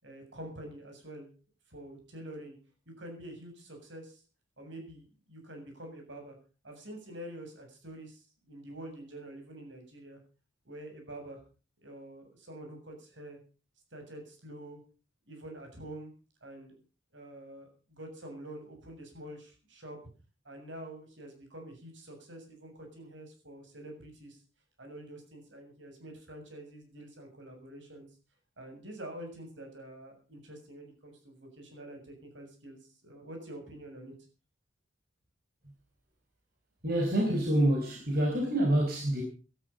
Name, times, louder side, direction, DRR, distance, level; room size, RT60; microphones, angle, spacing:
voice 1, 0.0-1.3 1.7-2.5 2.9-4.2 4.6-6.4 6.6-10.2 10.7-11.4 11.8-13.4 13.9-14.8 15.3-16.1 16.4-16.7 17.1-20.0 20.4-24.4 24.8-28.1 28.6-34.1, right 1 dB, 70° right, 4 dB, 7.4 m, -46 dB
voice 2, 36.8-39.2, right 1 dB, 55° right, 0 dB, 4.6 m, -27 dB
18.0 x 12.5 x 5.4 m, 0.37 s
head